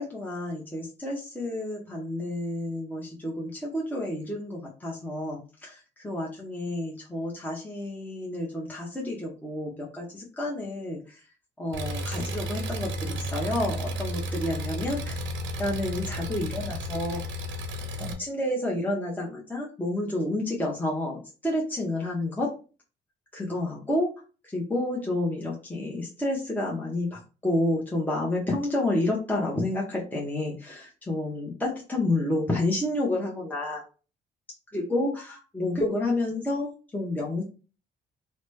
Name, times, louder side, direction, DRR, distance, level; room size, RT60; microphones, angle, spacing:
voice 1, 0.0-11.2 11.6-15.2 15.6-17.2 18.0-22.6 23.3-24.1 24.4-33.8 34.7-37.4, left 1 dB, 10° left, -3 dB, 0.8 m, -30 dB
Engine, 11.7-18.1, equal, 75° right, 0.6 m, -33 dB
3.1 x 2.1 x 3.1 m, 0.34 s
cardioid pair, 90°, 20 cm